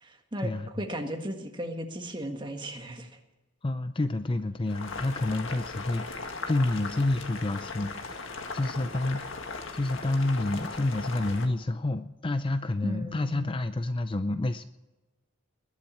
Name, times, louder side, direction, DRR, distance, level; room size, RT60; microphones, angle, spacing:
voice 1, 0.0-3.1 12.8-13.6, equal, 25° right, 4 dB, 1.8 m, -36 dB
voice 2, 3.6-9.4 9.7-14.6, left 2 dB, 25° left, 10 dB, 0.5 m, -29 dB
Boiling, 4.7-11.5, left 3 dB, 65° left, 1.7 m, -38 dB
21.0 x 7.4 x 8.6 m, 1.1 s
head